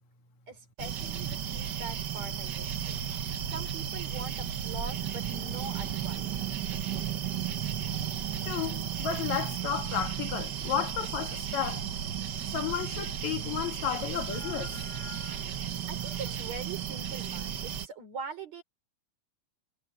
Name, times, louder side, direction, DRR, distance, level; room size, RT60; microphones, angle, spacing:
voice 1, 0.5-3.0 3.5-6.3 15.9-18.6, right 4 dB, 60° right, 6.0 m, -43 dB
sound 1, 0.8-17.9, right 9 dB, 85° right, 0.9 m, -34 dB
voice 2, 8.4-11.9 12.5-15.5, left 9 dB, 65° left, 3.1 m, -33 dB
omnidirectional pair, 3.5 m